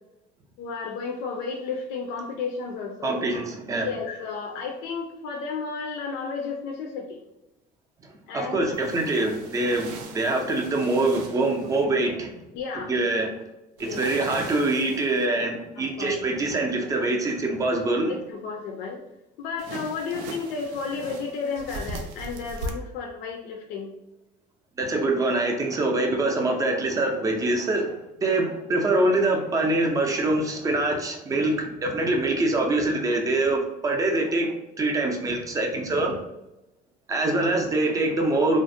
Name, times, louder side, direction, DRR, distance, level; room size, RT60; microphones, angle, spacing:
voice 1, 0.6-3.4 3.8-7.2 8.3-9.2 12.5-12.9 13.8-14.3 15.2-15.5 15.8-16.1 18.1-19.0 19.4-23.9 36.1-36.2, left 5 dB, 75° left, 1 dB, 0.4 m, -33 dB
voice 2, 3.0-3.9 8.3-12.4 12.7-13.3 13.8-18.2 24.8-36.1 37.1-38.6, right 2 dB, 20° right, 2 dB, 0.4 m, -24 dB
sound 1, 8.7-11.8 13.8-15.3 19.6-22.7, right 3 dB, 85° right, 0.4 m, -39 dB
2.4 x 2.0 x 2.5 m, 0.94 s
cardioid pair, 135°, 17 cm